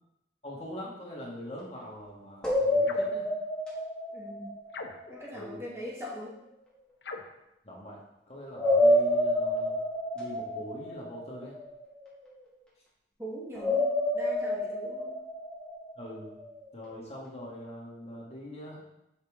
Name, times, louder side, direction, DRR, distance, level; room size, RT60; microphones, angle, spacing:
voice 1, 0.4-3.3 5.3-5.6 7.6-8.0 8.3-9.8 10.1-11.6 16.0-16.3 16.7-18.8, left 1 dB, 35° left, -3 dB, 1.4 m, -42 dB
sound 1, 2.4-5.4 8.5-11.9 13.6-16.3, left 1 dB, 5° left, 1.2 m, -29 dB
sound 2, 2.8-3.2 4.7-5.3 7.0-7.4, left 3 dB, 75° left, 0.6 m, -42 dB
voice 2, 4.1-4.5 5.1-6.4 13.2-15.2, equal, 15° right, -4 dB, 1.1 m, -41 dB
5.7 x 5.2 x 3.5 m, 0.84 s
head